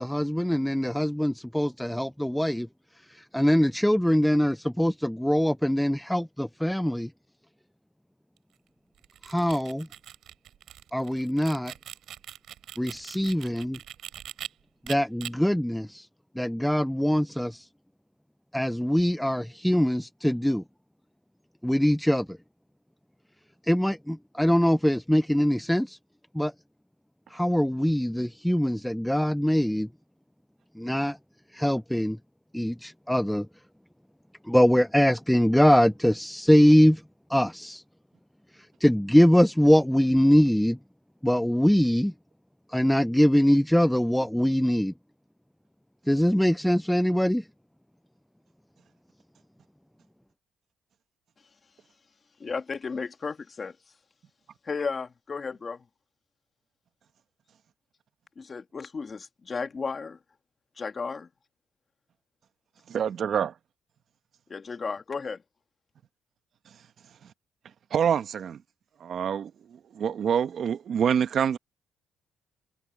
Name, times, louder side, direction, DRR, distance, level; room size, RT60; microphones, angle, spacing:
voice 1, 0.0-2.7 3.1-7.1 9.2-9.9 10.9-11.7 12.8-13.8 14.9-16.1 16.4-17.7 18.5-20.6 21.6-22.4 23.6-26.0 26.3-26.5 27.3-29.9 30.8-31.2 31.5-32.2 32.5-33.5 34.5-37.0 37.3-37.8 38.5-40.8 41.2-42.1 42.7-44.9 46.1-47.5, equal, 5° left, 0.3 m, -23 dB
sound 1, 9.0-14.5 14.8-15.3, right 11 dB, 75° right, 5.2 m, -42 dB
voice 2, 52.4-53.8 54.6-55.8 58.4-60.2 60.8-61.3 64.5-65.4, left 5 dB, 35° left, 2.0 m, -34 dB
voice 3, 62.9-63.5 67.9-68.6 69.0-69.5 69.9-71.6, right 8 dB, 60° right, 1.0 m, -26 dB
cardioid pair, 90°, 0 cm